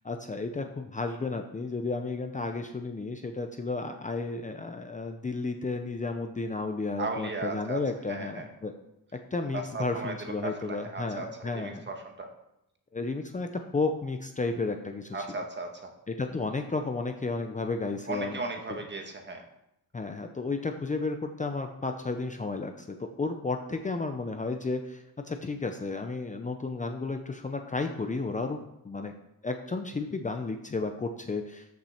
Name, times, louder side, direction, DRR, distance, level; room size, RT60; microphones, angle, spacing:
voice 1, 0.0-8.7 9.3-11.9 12.9-15.2 16.1-18.4 19.9-28.6 28.8-29.1 29.4-31.7, left 3 dB, 20° left, 5 dB, 0.7 m, -33 dB
voice 2, 7.0-7.8 8.1-8.5 9.5-12.3 15.1-15.9 18.1-19.4, right 3 dB, 30° right, 3 dB, 1.7 m, -36 dB
13.5 x 5.9 x 4.4 m, 0.84 s
wide cardioid pair, 125°, 35 cm